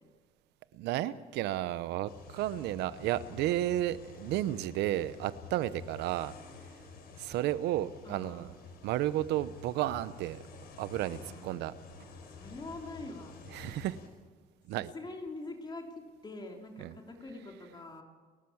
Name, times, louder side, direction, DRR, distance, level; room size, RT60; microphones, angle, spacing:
voice 1, 0.7-6.3 7.2-8.5 8.8-10.4 10.8-11.7 13.5-14.0 14.7-14.9 16.8-16.9, right 13 dB, 85° right, 15 dB, 0.9 m, -32 dB
sound 1, 2.1-14.1, left 4 dB, 70° left, 4.9 m, -50 dB
voice 2, 8.0-8.5 11.2-11.6 12.1-13.4 14.7-18.0, left 2 dB, 25° left, 1 dB, 3.2 m, -44 dB
30.0 x 12.5 x 7.2 m, 1.5 s
cardioid pair, 110°, 17 cm